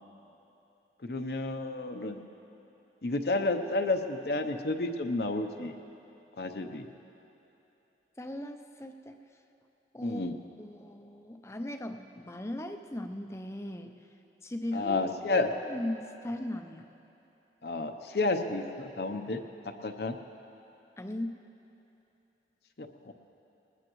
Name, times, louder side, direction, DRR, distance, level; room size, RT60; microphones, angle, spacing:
voice 1, 1.0-2.2 3.0-5.7 6.4-6.9 10.0-10.4 14.7-15.5 17.6-19.4 19.8-20.2 22.8-23.1, left 2 dB, 65° left, 5 dB, 0.7 m, -31 dB
voice 2, 8.2-9.2 9.9-10.3 10.6-13.9 14.4-15.0 15.3-16.9 21.0-21.4, left 1 dB, 15° left, 6 dB, 0.5 m, -38 dB
20.0 x 19.5 x 3.1 m, 2.9 s
head